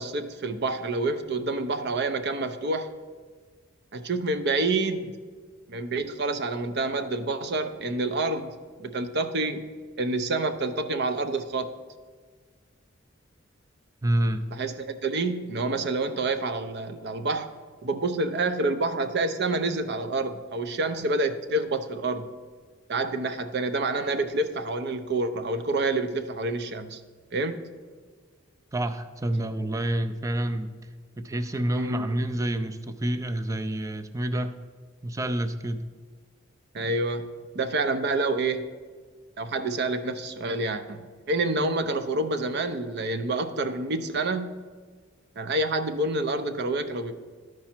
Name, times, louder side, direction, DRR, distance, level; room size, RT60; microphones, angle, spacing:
voice 1, 0.0-2.9 3.9-5.2 5.7-9.7 10.0-11.7 14.5-17.5 17.8-22.3 22.9-27.0 27.3-27.7 31.7-32.1 36.7-38.8 39.4-44.5 45.4-47.1, right 2 dB, 55° right, 10 dB, 0.6 m, -28 dB
voice 2, 14.0-14.5 28.7-30.9 31.2-34.5 35.0-35.9, right 1 dB, 15° right, 9 dB, 0.4 m, -28 dB
13.0 x 4.8 x 4.4 m, 1.5 s
head